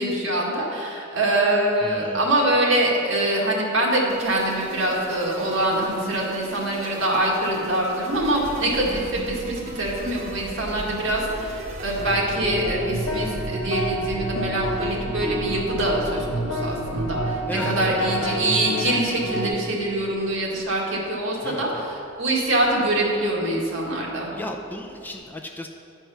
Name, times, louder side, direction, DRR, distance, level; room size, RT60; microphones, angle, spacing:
voice 1, 0.0-24.3, right 1 dB, 70° right, -3 dB, 1.6 m, -24 dB
voice 2, 1.8-2.2 11.8-12.0 17.5-17.7 21.4-21.8 24.3-25.7, left 1 dB, 10° left, 2 dB, 0.4 m, -35 dB
sound 1, 4.1-12.4, right 1 dB, 35° right, 1.0 m, -38 dB
sound 2, 8.1-25.1, equal, 85° right, 1.2 m, -40 dB
sound 3, 12.0-19.5, right 1 dB, 75° left, 1.3 m, -28 dB
9.9 x 4.5 x 5.6 m, 2.6 s
head